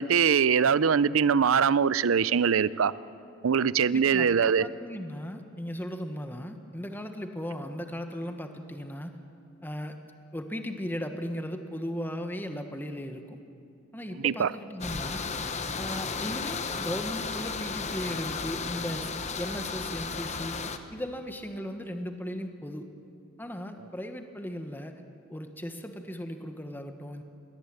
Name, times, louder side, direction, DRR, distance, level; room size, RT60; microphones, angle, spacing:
voice 1, 0.0-2.9 3.4-4.7 14.2-14.5, right 7 dB, 80° right, 18 dB, 0.5 m, -22 dB
voice 2, 3.9-9.2 9.6-10.0 10.3-13.4 13.9-15.2 15.7-19.1 19.4-20.6 20.9-22.9 23.4-25.0 25.3-27.2, equal, 10° left, 6 dB, 1.2 m, -37 dB
sound 1, 14.8-20.8, left 4 dB, 35° left, 0.9 m, -34 dB
21.0 x 17.0 x 8.9 m, 2.4 s
head